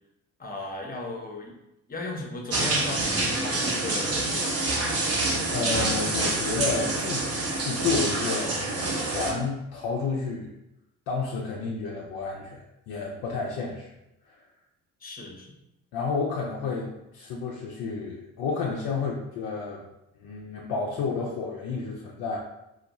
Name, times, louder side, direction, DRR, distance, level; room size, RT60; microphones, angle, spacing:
voice 1, 0.4-1.5 1.9-4.7 15.0-15.5, left 2 dB, 20° left, 0 dB, 0.8 m, -36 dB
sound 1, 2.5-9.3, right 2 dB, 35° right, 0.8 m, -27 dB
voice 2, 5.5-8.7 8.9-10.5 11.1-13.9 15.9-19.8 20.2-22.4, left 4 dB, 50° left, -2 dB, 0.6 m, -31 dB
4.2 x 2.0 x 2.9 m, 0.87 s
figure-of-eight pair, 45°, 45 cm